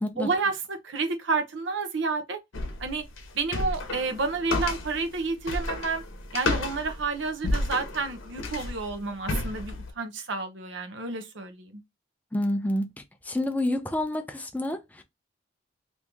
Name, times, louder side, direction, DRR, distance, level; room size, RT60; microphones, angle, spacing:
voice 1, 0.2-2.4 2.8-3.0 3.3-6.0 6.3-11.8, right 4 dB, 70° right, 0.7 m, -30 dB
sound 1, 2.5-9.9, left 2 dB, 85° left, 0.8 m, -32 dB
voice 2, 12.3-12.9 13.3-15.0, left 1 dB, 10° left, 0.4 m, -28 dB
3.0 x 2.7 x 3.4 m
head